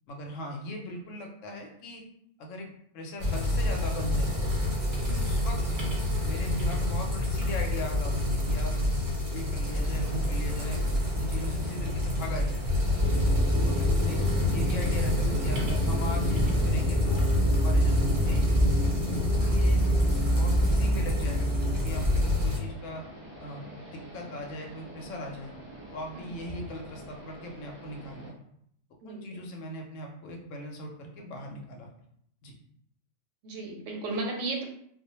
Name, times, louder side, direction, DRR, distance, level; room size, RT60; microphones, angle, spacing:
voice 1, 0.1-2.0 2.4-2.7 2.9-4.4 5.2-5.6 6.2-8.8 9.3-10.8 11.2-12.6 13.6-14.2 14.5-18.5 19.1-19.8 20.1-23.0 23.4-25.5 25.9-28.3 29.0-31.9 32.4-32.5, left 1 dB, 80° left, 1 dB, 0.9 m, -39 dB
sound 1, 3.2-22.6, left 1 dB, 45° right, 0.4 m, -28 dB
sound 2, 9.6-28.3, right 1 dB, 5° right, 0.8 m, -47 dB
sound 3, 13.0-22.2, equal, 50° left, 0.4 m, -27 dB
voice 2, 19.4-19.7 26.1-26.3 29.0-29.4 33.4-34.6, right 2 dB, 85° right, 1 dB, 1.0 m, -35 dB
2.3 x 2.0 x 2.8 m, 0.70 s
omnidirectional pair, 1.3 m